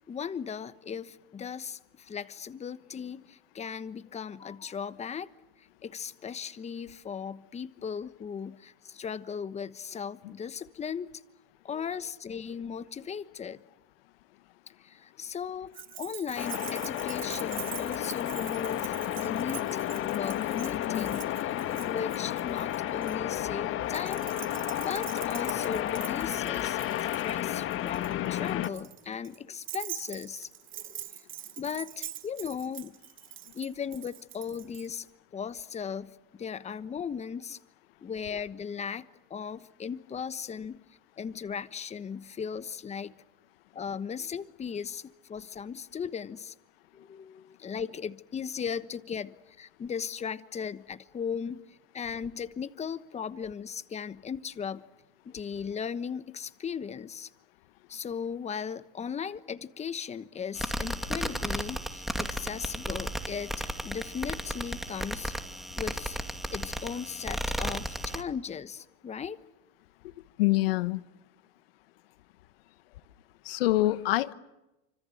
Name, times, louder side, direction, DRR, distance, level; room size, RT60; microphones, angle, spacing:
voice 1, 0.1-5.3 5.6-11.1 11.6-13.6 14.8-19.9 20.1-21.5 21.9-24.3 24.8-26.8 27.2-31.0 31.6-32.9 33.5-35.1 35.3-37.6 38.0-40.8 41.2-43.2 43.7-46.5 46.9-54.8 55.2-57.3 57.9-65.3 65.8-66.2 66.5-69.4, left 7 dB, 25° left, 1.2 m, -37 dB
Keys jangling, 15.7-23.2 23.9-34.9, right 13 dB, 45° right, 1.6 m, -44 dB
sound 1, 16.4-28.7, left 12 dB, 45° left, 1.8 m, -32 dB
sound 2, 60.5-68.2, equal, ahead, 2.4 m, -34 dB
voice 2, 70.4-71.0 73.4-74.3, left 17 dB, 80° left, 1.2 m, -25 dB
29.0 x 26.0 x 7.9 m
supercardioid pair, 105°, 29 cm